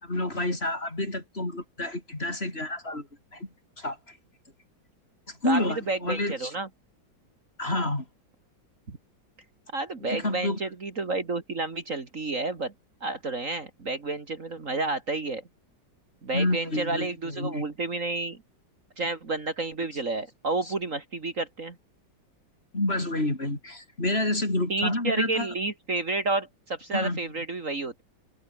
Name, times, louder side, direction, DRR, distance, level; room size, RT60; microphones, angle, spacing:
voice 1, 0.0-3.5 3.8-4.2 5.3-6.5 7.6-8.0 10.0-10.6 16.3-17.6 20.7-20.8 22.7-25.5 26.9-27.2, left 1 dB, 30° left, 5.3 m, -29 dB
voice 2, 5.4-6.7 8.9-9.0 9.7-12.7 13.0-15.4 16.2-18.4 19.0-21.8 24.7-28.0, right 3 dB, 45° right, 2.6 m, -30 dB
omnidirectional pair, 2.0 m